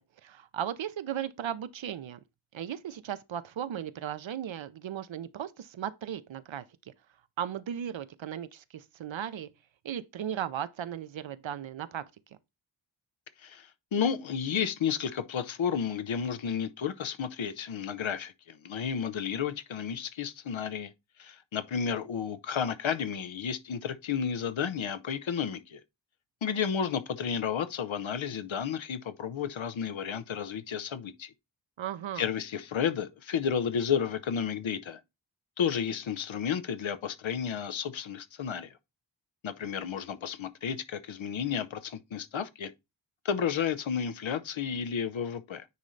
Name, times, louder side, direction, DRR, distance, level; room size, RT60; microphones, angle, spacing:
voice 1, 0.2-2.2 2.5-6.9 7.4-9.5 9.8-12.0 31.8-32.2, right 9 dB, 75° right, 0.7 m, -36 dB
voice 2, 13.4-20.9 21.2-25.8 26.4-31.3 32.2-35.0 35.6-38.7 39.4-42.7 43.2-45.7, left 7 dB, 75° left, 0.8 m, -32 dB
9.5 x 3.2 x 4.0 m
wide cardioid pair, 70°, 47 cm